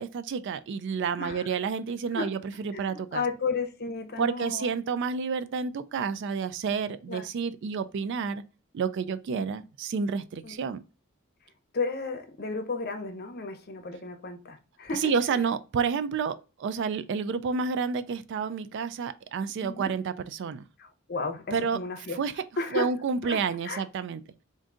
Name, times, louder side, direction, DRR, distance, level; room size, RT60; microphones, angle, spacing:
voice 1, 0.0-3.2 4.2-8.4 8.7-10.8 15.0-20.6 21.5-21.8 22.2-22.4 22.7-24.2, right 5 dB, 55° right, 0.3 m, -30 dB
voice 2, 1.2-1.5 2.1-2.3 2.7-4.7 7.1-7.3 10.4-10.6 11.7-15.4 19.6-19.9 20.8-22.2 22.6-22.9 23.2-23.4 23.6-23.8, left 4 dB, 45° left, 0.7 m, -33 dB
3.7 x 2.6 x 3.6 m
head